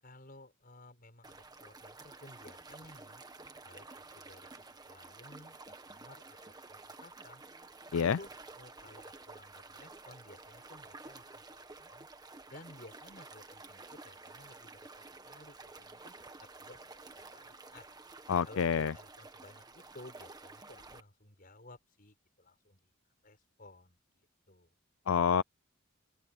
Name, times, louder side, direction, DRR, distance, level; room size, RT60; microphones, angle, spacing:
voice 1, 0.0-3.2 3.6-6.2 6.7-7.4 8.0-12.1 12.5-16.1 16.4-17.9 18.4-22.8 23.2-24.7, left 1 dB, 45° left, 6.4 m, -56 dB
sound 1, 1.2-21.0, right 3 dB, 20° right, 1.5 m, -51 dB
voice 2, 18.3-18.9 25.1-25.4, left 7 dB, 75° left, 0.4 m, -27 dB
open air
head